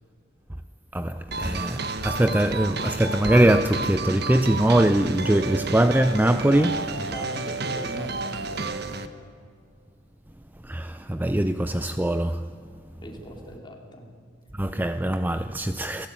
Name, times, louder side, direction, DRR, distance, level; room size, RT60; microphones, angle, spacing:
voice 1, 0.9-6.7 10.6-12.4 14.6-16.1, right 1 dB, 10° right, 0.5 m, -22 dB
sound 1, 1.3-9.1, right 3 dB, 55° right, 1.5 m, -31 dB
voice 2, 6.5-8.9 13.0-14.1, equal, 25° left, 3.7 m, -40 dB
29.5 x 17.0 x 9.1 m
head